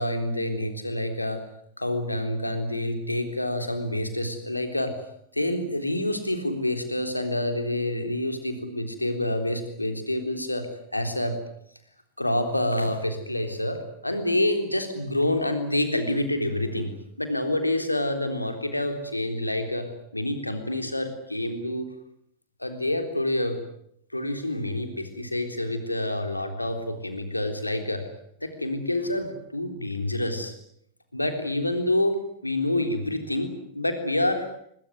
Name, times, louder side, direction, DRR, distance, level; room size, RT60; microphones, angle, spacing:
voice 1, 0.0-1.4 1.8-4.9 5.3-10.7 10.9-11.4 12.2-16.9 17.2-19.9 20.1-21.9 22.6-23.6 24.1-28.0 28.4-30.5 31.1-32.2 32.4-34.5, left 1 dB, 85° left, 7 dB, 3.7 m, -27 dB
22.5 x 22.5 x 9.3 m, 0.70 s
figure-of-eight pair, 90°, 0 cm